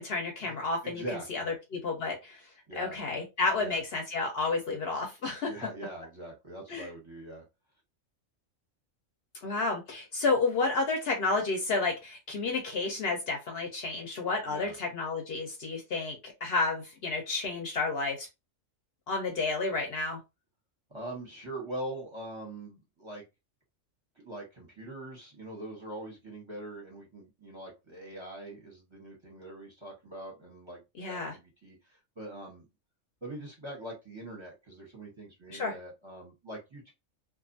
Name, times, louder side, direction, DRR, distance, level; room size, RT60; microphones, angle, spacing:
voice 1, 0.0-1.0 1.3-1.4 1.7-2.4 2.8-5.5 6.7-6.9 9.4-18.3 19.1-20.2 31.0-31.3 35.5-35.7, left 3 dB, 60° left, 3 dB, 0.8 m, -31 dB
voice 2, 0.8-1.5 2.7-3.0 3.5-3.8 5.4-7.4 14.4-14.7 20.9-23.2 24.2-32.7 33.2-36.9, right 1 dB, 25° right, -2 dB, 0.8 m, -43 dB
2.5 x 2.3 x 2.5 m, 0.24 s
omnidirectional pair, 1.3 m